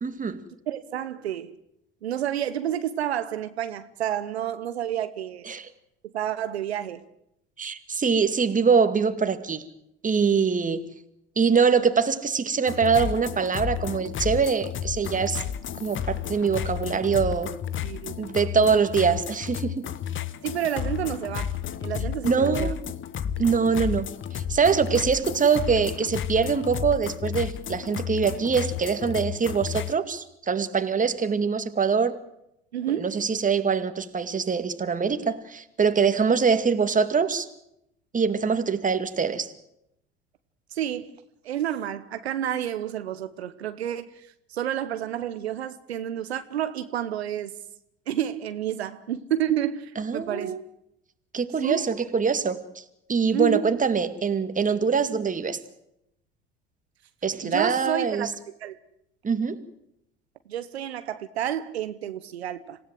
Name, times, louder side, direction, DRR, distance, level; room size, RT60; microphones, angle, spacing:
voice 1, 0.0-0.4 5.5-5.7 7.6-9.7 10.0-10.9 11.4-15.4 15.8-17.5 18.2-19.9 22.2-22.9 23.4-32.1 32.9-37.5 38.1-39.5 50.0-50.6 51.3-52.6 53.1-55.6 57.2-58.3 59.2-59.6, right 5 dB, 25° right, 10 dB, 2.3 m, -24 dB
voice 2, 0.7-1.5 2.0-5.5 6.0-7.0 17.8-18.2 20.4-22.7 32.7-33.2 40.7-41.1 41.4-47.6 48.1-50.6 51.6-51.9 53.3-53.8 57.4-58.3 58.6-58.7 60.5-62.8, right 11 dB, 85° right, 11 dB, 1.1 m, -30 dB
sound 1, 12.7-29.9, left 9 dB, 40° left, 1.2 m, -32 dB
26.5 x 16.5 x 7.8 m, 0.79 s
hypercardioid pair, 70°, 31 cm